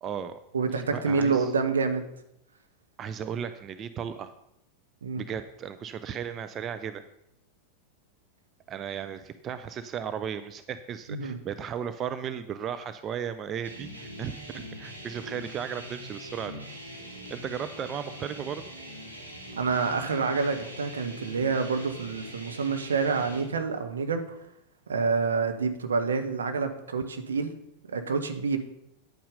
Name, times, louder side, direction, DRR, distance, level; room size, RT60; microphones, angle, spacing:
voice 1, 0.0-0.4 0.7-1.5 3.0-4.3 5.2-7.0 8.7-16.6 17.3-18.7, right 8 dB, 30° right, 11 dB, 0.6 m, -35 dB
voice 2, 0.5-2.1 5.0-5.2 11.1-11.4 19.6-24.4 24.9-27.5 27.9-28.6, right 4 dB, 70° right, 6 dB, 1.3 m, -27 dB
sound 1, 13.6-23.4, equal, 85° right, 2.5 m, -43 dB
10.5 x 8.6 x 5.2 m, 0.80 s
figure-of-eight pair, 90°, 0 cm